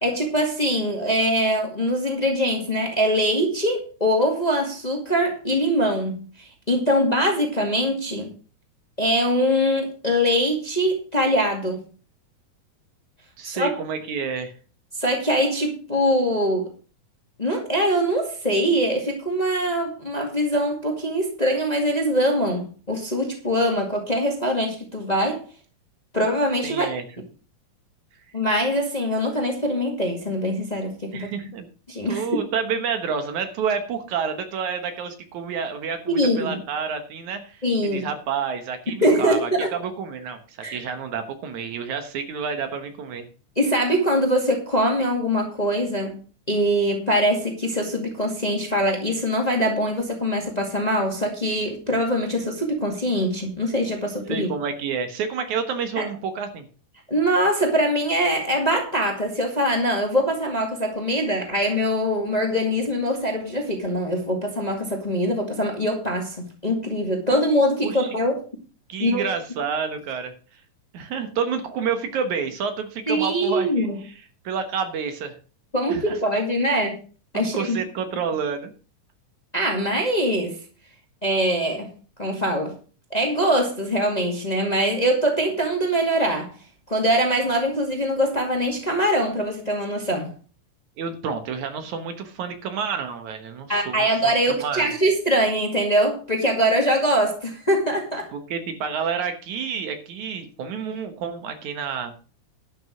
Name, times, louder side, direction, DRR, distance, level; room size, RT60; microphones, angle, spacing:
voice 1, 0.0-8.3 9.0-11.8 13.4-13.7 15.0-16.7 17.4-25.4 26.1-26.9 28.3-31.3 31.9-32.3 36.1-36.6 37.6-38.0 39.0-39.7 40.6-40.8 43.6-46.2 46.5-54.5 56.0-56.1 57.1-66.4 66.6-68.3 69.0-69.3 73.1-74.0 75.7-77.0 77.3-77.8 79.5-80.6 81.2-81.9 82.2-82.7 83.1-86.5 86.9-90.3 93.7-98.3, equal, 15° left, 2 dB, 1.8 m, -23 dB
voice 2, 13.4-14.5 26.6-27.1 31.1-31.7 32.1-37.6 37.9-43.3 54.3-56.7 67.8-68.1 68.9-70.3 70.9-74.1 74.4-75.4 75.9-76.2 77.3-78.7 91.0-94.9 98.3-102.1, right 6 dB, 70° right, 8 dB, 2.7 m, -29 dB
11.5 x 6.3 x 6.4 m, 0.37 s
omnidirectional pair, 3.6 m